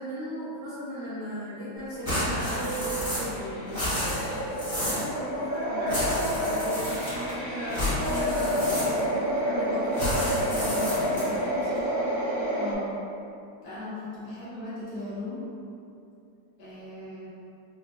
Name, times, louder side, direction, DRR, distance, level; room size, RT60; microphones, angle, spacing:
voice 1, 0.0-4.3 4.8-11.7, equal, 55° right, -13 dB, 1.0 m, -37 dB
sound 1, 1.9-12.7, equal, 70° right, 0.6 m, -29 dB
sound 2, 2.0-3.4 3.6-5.1 5.9-7.3 7.7-9.2 9.9-11.4, left 1 dB, 20° left, 1.0 m, -31 dB
voice 2, 12.5-13.0 13.6-15.5 16.6-17.3, left 2 dB, 55° left, -10 dB, 1.3 m, -38 dB
4.9 x 2.4 x 2.5 m, 2.6 s
omnidirectional pair, 2.3 m